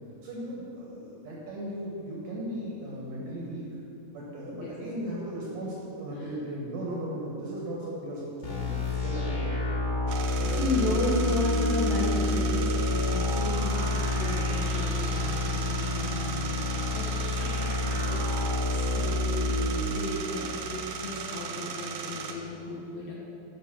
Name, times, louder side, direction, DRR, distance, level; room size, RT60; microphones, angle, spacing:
voice 1, 0.2-3.6 4.1-8.7 9.0-9.4 10.3-11.0, right 1 dB, 70° right, -4 dB, 1.7 m, -37 dB
sound 1, 8.4-19.7, left 2 dB, 35° left, 1.4 m, -28 dB
sound 2, 10.1-22.3, right 5 dB, 85° right, 3.0 m, -37 dB
voice 2, 10.4-17.1 17.3-23.1, left 2 dB, 70° left, -5 dB, 2.4 m, -34 dB
9.4 x 5.4 x 5.9 m, 2.8 s
omnidirectional pair, 5.1 m